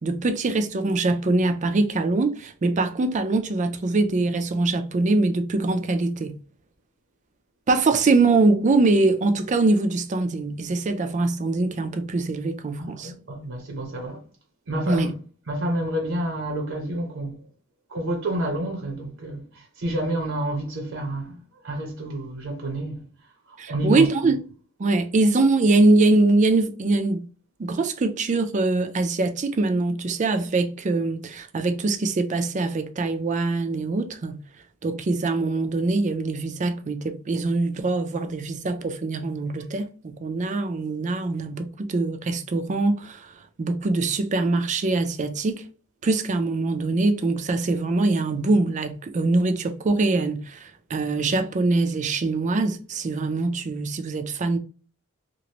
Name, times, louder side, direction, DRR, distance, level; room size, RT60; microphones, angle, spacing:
voice 1, 0.0-6.4 7.7-13.1 14.9-15.1 23.6-24.4 24.8-27.3 27.6-34.4 34.8-43.3 43.6-45.6 46.0-54.6, right 3 dB, 35° right, 0.4 m, -23 dB
voice 2, 12.8-14.2 14.7-15.1 15.5-17.4 17.9-23.1 23.5-24.1, right 1 dB, 65° right, 0.7 m, -29 dB
2.9 x 2.5 x 2.8 m
head